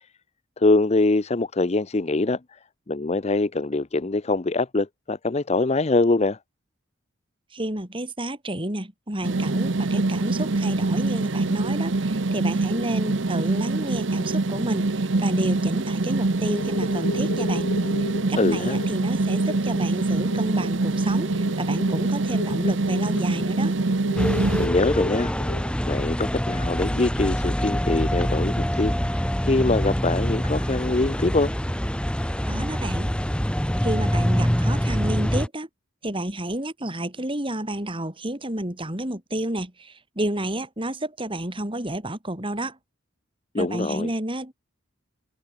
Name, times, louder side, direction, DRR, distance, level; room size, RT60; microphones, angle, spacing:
voice 1, 0.6-2.6 2.9-6.4 18.4-18.8 24.6-25.3 25.8-31.5 43.5-44.1, left 2 dB, 35° left, 0.6 m, -23 dB
voice 2, 7.5-17.7 18.0-23.8 32.5-33.1 33.8-35.7 36.0-42.8 43.6-44.5, right 1 dB, 25° right, 3.9 m, -30 dB
sound 1, 9.2-24.7, right 2 dB, 65° right, 0.9 m, -24 dB
sound 2, 15.9-16.1 16.4-25.7, left 2 dB, 80° left, 4.6 m, -35 dB
sound 3, 24.2-35.5, equal, 5° left, 2.0 m, -25 dB
head